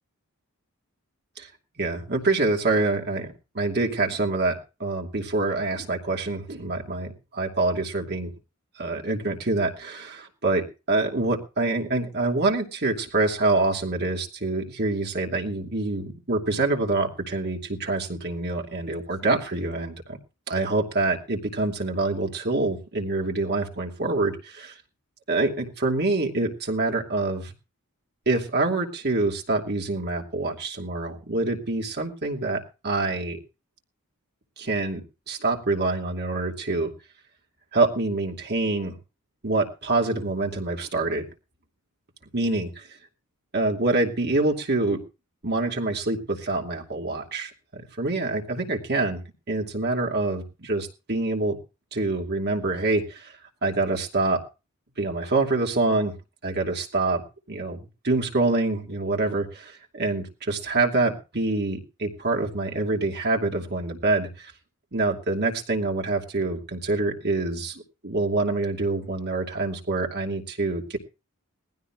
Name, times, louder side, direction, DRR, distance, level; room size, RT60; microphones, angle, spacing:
voice 1, 1.8-3.3 3.5-8.3 8.8-20.2 20.5-24.7 25.3-27.5 28.3-33.4 34.6-35.0 35.3-36.9 37.7-38.9 39.4-41.2 42.3-42.9 43.5-45.0 45.4-51.6 51.9-53.3 53.6-54.4 55.0-56.1 56.4-57.2 57.5-64.5 64.9-71.0, right 2 dB, 50° right, 2 dB, 2.6 m, -26 dB
21.0 x 16.0 x 2.5 m, 0.31 s
head